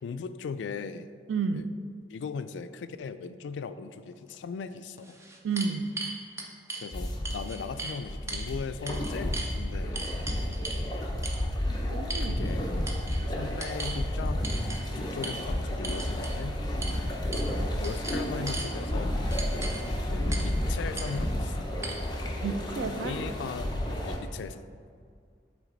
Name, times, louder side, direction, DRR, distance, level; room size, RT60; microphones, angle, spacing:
voice 1, 0.0-1.1 1.5-1.6 2.1-5.2 6.8-10.0 10.4-10.6 12.2-12.9 13.4-14.6 15.0-19.1 20.1-21.7 22.9-24.6, left 5 dB, 80° left, 11 dB, 0.3 m, -39 dB
voice 2, 1.3-1.7 5.4-5.9 11.9-12.4 22.4-23.2, right 5 dB, 90° right, 10 dB, 0.4 m, -31 dB
sound 1, 4.3-4.4 5.0-6.9 7.2-8.0 8.3-8.5 8.9-9.5 9.9-10.8 11.2-11.4 12.1-12.6 12.9-13.2 13.6-14.0 14.4-14.8 15.2-15.4 15.8-16.3 16.8-17.0 17.3-17.5 17.8-18.7 19.3-19.8 20.3-20.5 21.0-21.1 21.8-21.9, right 3 dB, 15° right, 0.5 m, -37 dB
sound 2, 6.9-24.2, left 1 dB, 25° left, 0.7 m, -31 dB
8.2 x 3.4 x 3.9 m, 2.1 s
head